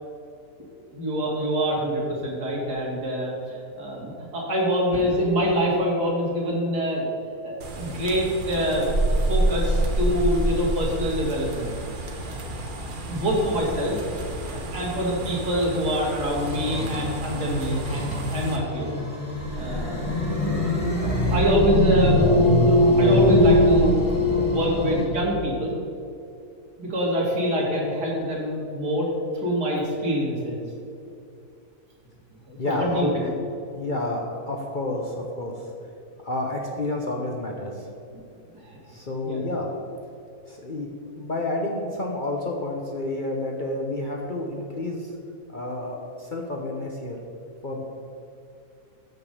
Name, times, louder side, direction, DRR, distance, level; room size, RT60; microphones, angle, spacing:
voice 1, 0.9-7.1 7.4-11.7 12.2-12.4 12.8-14.0 14.5-19.0 19.6-20.0 20.4-20.7 21.0-25.7 26.8-29.1 29.3-30.6 32.5-33.3 38.6-38.8 39.2-39.4, equal, 85° right, -3 dB, 2.5 m, -25 dB
sound 1, 7.6-18.6, right 1 dB, 40° right, 0.9 m, -29 dB
sound 2, 16.3-25.0, left 1 dB, 25° left, 1.3 m, -22 dB
voice 2, 32.6-33.3 33.7-35.7 36.2-37.9 38.9-39.7 40.5-40.9 41.1-45.1 45.5-47.2 47.6-47.8, left 2 dB, 40° left, 0 dB, 0.7 m, -29 dB
7.0 x 6.0 x 6.5 m, 2.5 s
omnidirectional pair, 1.7 m